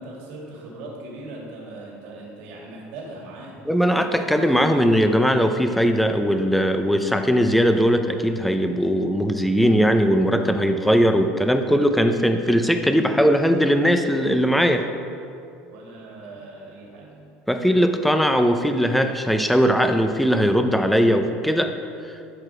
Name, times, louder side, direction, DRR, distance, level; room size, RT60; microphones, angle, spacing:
voice 1, 0.0-3.6 15.7-17.3, right 2 dB, 70° right, -3 dB, 2.4 m, -39 dB
voice 2, 3.6-14.8 17.5-21.7 22.0-22.1, equal, ahead, 6 dB, 0.6 m, -19 dB
12.5 x 4.9 x 4.9 m, 2.5 s
supercardioid pair, 120°, 4 cm